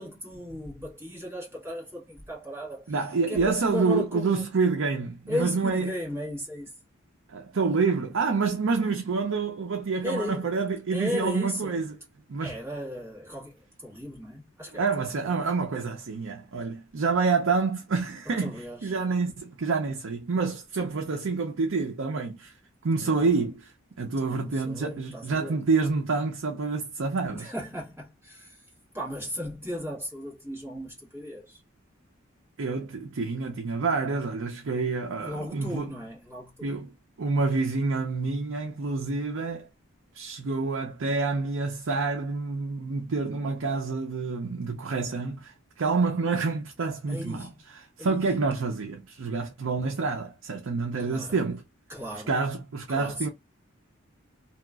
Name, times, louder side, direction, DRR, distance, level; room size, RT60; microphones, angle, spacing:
voice 1, 0.0-3.0 3.3-4.5 5.3-6.7 10.0-10.4 10.9-11.8 12.4-15.2 18.4-19.0 22.9-23.3 24.2-25.6 27.2-28.7 28.9-31.6 35.2-36.7 47.1-47.5 48.0-48.3 51.0-51.4 51.9-52.3 52.9-53.3, left 1 dB, 10° right, 1.4 m, -36 dB
voice 2, 2.9-5.9 7.3-12.0 12.3-12.5 14.7-22.5 22.8-23.7 24.0-27.5 32.6-35.9 36.6-39.7 40.1-51.6 52.3-53.3, right 4 dB, 70° right, 0.5 m, -28 dB
2.8 x 2.3 x 2.3 m
head